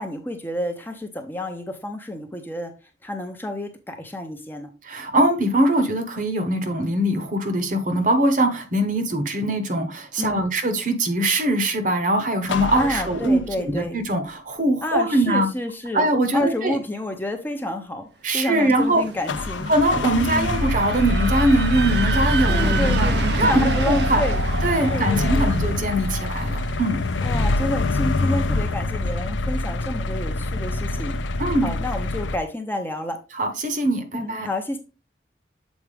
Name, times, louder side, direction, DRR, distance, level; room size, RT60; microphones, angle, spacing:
voice 1, 0.0-2.7 3.0-4.7 10.2-10.5 12.7-14.0 14.8-18.1 18.3-19.7 20.3-20.6 22.5-24.4 24.9-25.6 27.2-31.2 31.6-33.2 34.1-34.8, left 1 dB, 10° left, 0.7 m, -29 dB
voice 2, 4.8-15.5 15.9-16.8 18.2-19.0 19.7-24.2 24.6-27.0 31.4-31.7 33.3-34.5, right 1 dB, 45° right, 1.0 m, -22 dB
sound 1, 12.4-13.8 19.3-32.4, left 2 dB, 85° left, 0.6 m, -25 dB
sound 2, 18.5-28.4, right 4 dB, 65° right, 0.6 m, -30 dB
7.2 x 4.6 x 3.3 m
head